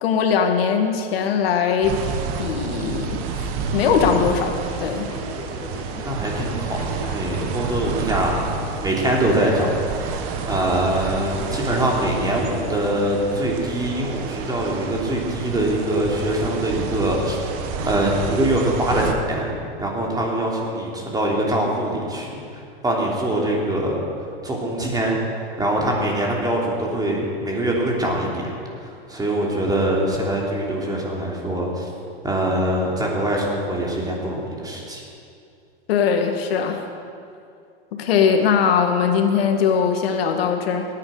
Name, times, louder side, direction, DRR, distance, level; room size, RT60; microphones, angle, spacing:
voice 1, 0.0-2.0 2.4-3.4 3.7-5.1 35.9-36.8 37.9-40.9, left 6 dB, 75° left, 4 dB, 1.8 m, -20 dB
sound 1, 1.8-19.1, right 5 dB, 45° right, 1.6 m, -29 dB
sound 2, 3.7-16.3, left 2 dB, 15° left, 2.7 m, -39 dB
voice 2, 5.7-8.5 8.8-17.4 17.8-19.0 19.3-19.5 19.8-24.0 24.4-25.2 25.6-28.5 28.8-31.9 32.2-35.0, right 1 dB, 10° right, -2 dB, 3.2 m, -23 dB
17.5 x 9.7 x 6.6 m, 2.5 s
hypercardioid pair, 120°, 30 cm